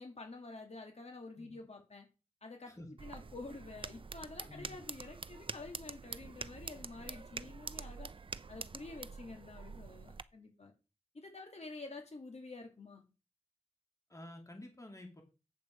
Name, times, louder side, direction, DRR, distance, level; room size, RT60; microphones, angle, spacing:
voice 1, 0.0-2.1 2.4-8.1 8.5-10.7 11.1-13.0, left 3 dB, 65° left, 2.4 m, -49 dB
sound 1, 3.0-10.2, right 4 dB, 45° right, 0.5 m, -46 dB
voice 2, 14.1-15.2, left 1 dB, 25° left, 2.4 m, -50 dB
8.6 x 7.6 x 4.6 m
wide cardioid pair, 75°, 12 cm